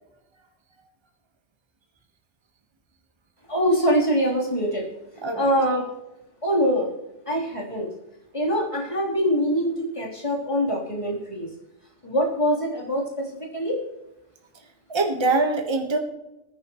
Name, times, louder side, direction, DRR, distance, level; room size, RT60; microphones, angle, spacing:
voice 1, 3.5-4.8 5.4-5.9 6.4-6.9 7.3-7.9 8.3-11.5 12.0-13.8, equal, 25° left, -3 dB, 3.7 m, -24 dB
voice 2, 5.2-5.5 14.9-16.0, right 3 dB, 25° right, 4 dB, 1.4 m, -23 dB
19.5 x 9.9 x 3.1 m, 0.91 s
omnidirectional pair, 1.2 m